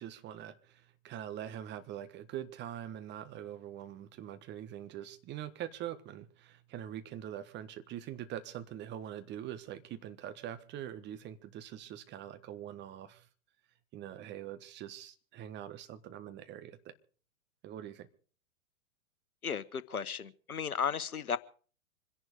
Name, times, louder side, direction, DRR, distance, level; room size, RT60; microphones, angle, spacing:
voice 1, 0.0-13.3 13.9-16.9 17.6-18.1, right 11 dB, 25° right, 1.4 m, -43 dB
voice 2, 19.4-21.4, left 6 dB, 80° left, 1.1 m, -34 dB
25.5 x 11.0 x 4.9 m
figure-of-eight pair, 105°, 43 cm